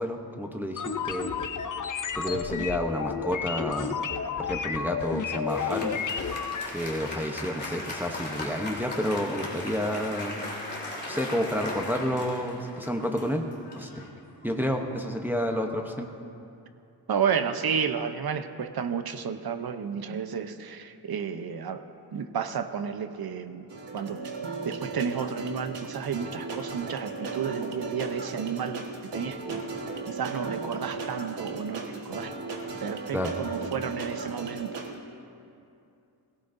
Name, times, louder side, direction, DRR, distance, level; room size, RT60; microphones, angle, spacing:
voice 1, 0.0-1.3 2.2-4.0 4.4-5.9 6.7-10.4 11.1-13.5 13.8-14.1 14.4-16.1 33.1-33.3, equal, 5° right, 2 dB, 0.8 m, -30 dB
sound 1, 0.8-6.7, left 6 dB, 50° left, 0.6 m, -31 dB
Applause, 5.0-14.8, left 2 dB, 25° left, 3.1 m, -38 dB
voice 2, 17.1-21.8 22.1-23.7 23.9-24.2 24.6-28.8 29.1-29.6 30.1-32.3 32.8-34.8, right 7 dB, 65° right, 9 dB, 0.8 m, -31 dB
sound 2, 23.7-34.9, right 3 dB, 85° right, 1.6 m, -36 dB
21.0 x 16.5 x 2.7 m, 2.6 s
wide cardioid pair, 120°, 41 cm